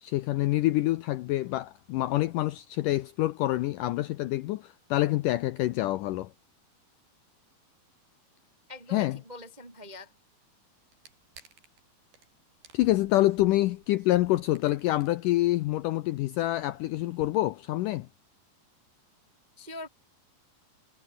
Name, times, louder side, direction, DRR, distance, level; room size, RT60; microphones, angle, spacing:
voice 1, 0.0-6.3 8.9-9.2 12.7-18.1, left 16 dB, 80° left, 1.9 m, -26 dB
voice 2, 8.7-10.1 19.6-19.9, left 2 dB, 25° right, 0.9 m, -43 dB
sound 1, 10.9-11.8 12.1-12.3 12.6-17.3, right 6 dB, 70° right, 6.7 m, -54 dB
omnidirectional pair, 4.5 m